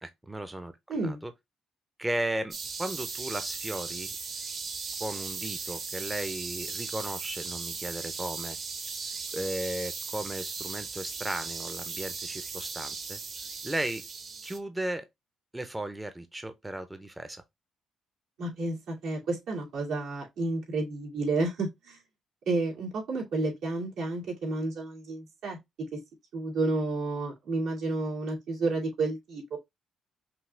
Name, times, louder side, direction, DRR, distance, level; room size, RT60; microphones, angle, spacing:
voice 1, 0.0-0.7 1.0-1.3 2.0-4.2 5.0-8.6 9.3-13.2 13.6-14.1 14.4-15.1 15.5-17.4, right 1 dB, 10° right, 0.6 m, -35 dB
voice 2, 0.9-1.2 18.4-22.0 22.5-25.6 25.9-26.0 26.3-29.6, right 3 dB, 80° right, 2.4 m, -31 dB
sound 1, 2.5-14.6, right 4 dB, 50° right, 1.1 m, -37 dB
5.8 x 2.3 x 3.2 m
cardioid pair, 90°, 0 cm